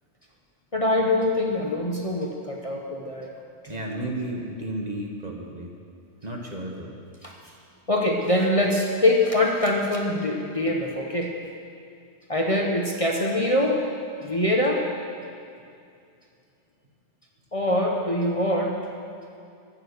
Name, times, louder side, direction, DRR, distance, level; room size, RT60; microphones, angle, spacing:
voice 1, 0.7-3.3 7.2-7.3 7.9-11.3 12.3-13.8 14.2-14.9 17.5-18.8, left 1 dB, 30° left, 0 dB, 1.1 m, -23 dB
voice 2, 3.7-5.7 6.2-6.9, right 1 dB, 35° right, 0 dB, 1.5 m, -33 dB
13.0 x 9.1 x 6.7 m, 2.4 s
omnidirectional pair, 1.2 m